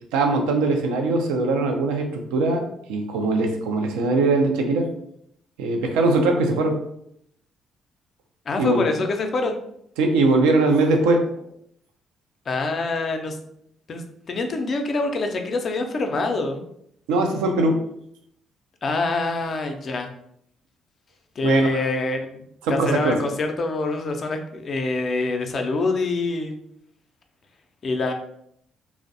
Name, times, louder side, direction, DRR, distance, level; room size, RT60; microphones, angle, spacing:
voice 1, 0.1-2.6 2.9-4.9 5.6-6.8 8.6-8.9 10.0-11.2 17.1-17.8 21.4-21.8 22.6-23.2, right 2 dB, 75° right, 3 dB, 0.3 m, -21 dB
voice 2, 8.5-9.6 12.5-13.4 13.9-16.6 18.8-20.1 21.4-26.6 27.8-28.1, left 3 dB, 45° left, 4 dB, 0.4 m, -25 dB
2.5 x 2.0 x 2.6 m, 0.72 s
hypercardioid pair, 45°, 0 cm